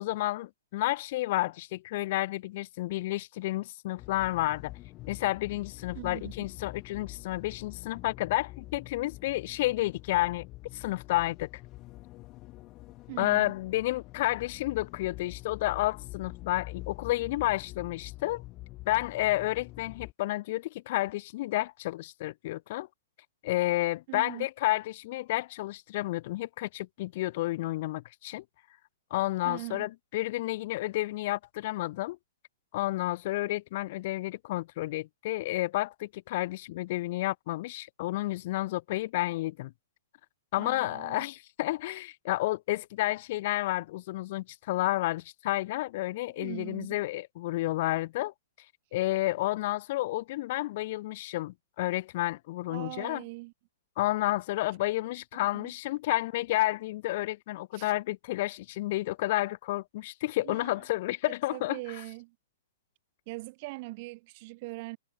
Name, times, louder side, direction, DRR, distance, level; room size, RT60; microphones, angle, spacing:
voice 1, 0.0-4.7 5.1-10.5 10.7-11.5 13.2-18.4 18.9-22.9 23.4-28.4 29.1-32.2 32.7-39.7 40.5-48.3 48.9-53.2 54.0-61.8, left 17 dB, 50° left, 0.3 m, -31 dB
sound 1, 4.0-20.1, left 19 dB, 35° left, 0.8 m, -46 dB
voice 2, 5.9-6.5 13.1-13.5 24.1-24.5 29.4-29.9 40.6-41.3 46.4-47.0 52.7-53.5 55.3-55.7 57.7-57.9 60.4-60.8 61.5-62.4 63.3-65.0, right 24 dB, 45° right, 0.4 m, -41 dB
figure-of-eight pair, 115°, 0 cm